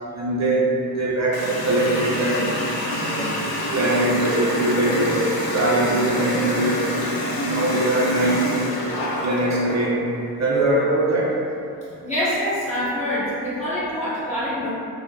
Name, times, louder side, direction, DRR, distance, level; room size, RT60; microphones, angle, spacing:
voice 1, 0.1-2.5 2.9-3.4 3.7-8.6 9.2-10.1 10.4-11.4, right 1 dB, 45° right, -5 dB, 0.5 m, -22 dB
Water tap faucet, 1.3-9.8, left 1 dB, 80° left, 0.7 m, -27 dB
voice 2, 11.8-14.7, equal, 20° left, -11 dB, 1.1 m, -25 dB
3.6 x 2.2 x 2.2 m, 2.7 s
cardioid pair, 95°, 37 cm